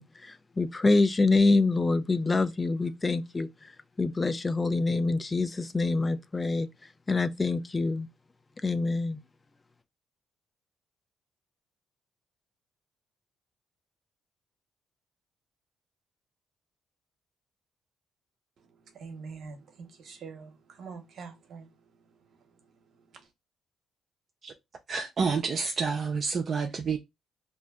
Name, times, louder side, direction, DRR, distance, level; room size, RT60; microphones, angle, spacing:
voice 1, 0.0-3.7 4.0-6.7 7.1-8.1 8.6-9.2, left 3 dB, 25° left, 0.3 m, -26 dB
voice 2, 18.6-23.3, right 5 dB, 65° right, 0.8 m, -46 dB
voice 3, 24.9-27.0, right 5 dB, 45° right, 0.4 m, -29 dB
2.5 x 2.1 x 3.6 m
cardioid pair, 90°, 0 cm